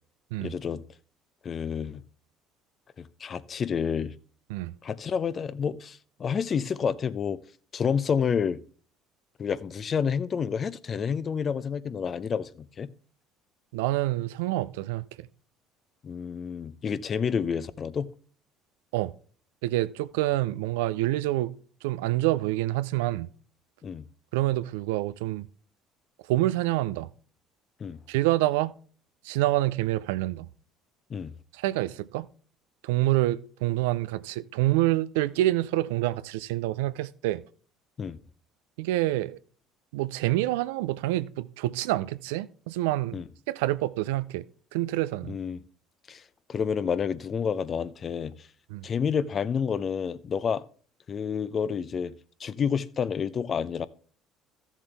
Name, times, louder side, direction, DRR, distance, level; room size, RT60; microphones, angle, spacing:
voice 1, 0.4-0.8 1.4-2.0 3.0-4.1 4.8-7.4 7.7-8.6 9.4-12.9 16.0-18.1 23.8-24.0 27.8-28.0 31.1-31.3 38.0-38.2 43.1-43.3 45.3-45.6 46.1-46.2 46.5-48.3 48.8-50.6 51.1-52.1 52.4-53.9, left 6 dB, 45° left, 0.6 m, -29 dB
voice 2, 13.7-15.3 18.9-19.1 19.6-21.6 21.8-23.3 24.3-25.5 26.3-27.1 28.1-28.8 29.2-30.5 31.5-32.3 32.8-37.4 38.8-39.4 39.9-43.2 43.5-44.4 44.7-45.4 48.7-48.9, right 16 dB, 85° right, 0.4 m, -27 dB
13.5 x 7.3 x 3.4 m
hypercardioid pair, 70°, 0 cm